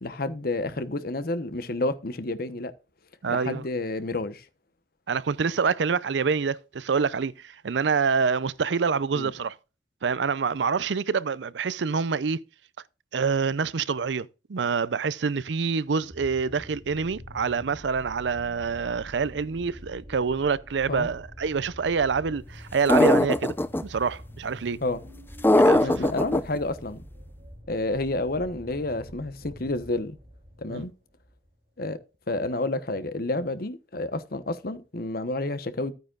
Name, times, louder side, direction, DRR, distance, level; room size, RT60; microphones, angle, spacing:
voice 1, 0.0-2.7 3.3-4.4 9.1-9.3 20.9-21.1 24.8-25.0 25.8-27.0 27.7-30.2 30.6-30.9 31.8-32.0 32.3-35.9, left 2 dB, 55° left, 1.1 m, -30 dB
voice 2, 3.2-3.6 5.1-9.6 10.0-12.4 13.1-23.6 23.8-24.8 25.5-26.1 30.7-30.8, right 5 dB, 85° right, 0.5 m, -26 dB
sound 1, 16.0-31.5 32.3-32.4, equal, 35° right, 3.8 m, -46 dB
sound 2, 22.9-23.8 25.4-26.4, left 1 dB, 10° left, 0.5 m, -19 dB
13.0 x 9.2 x 2.4 m
head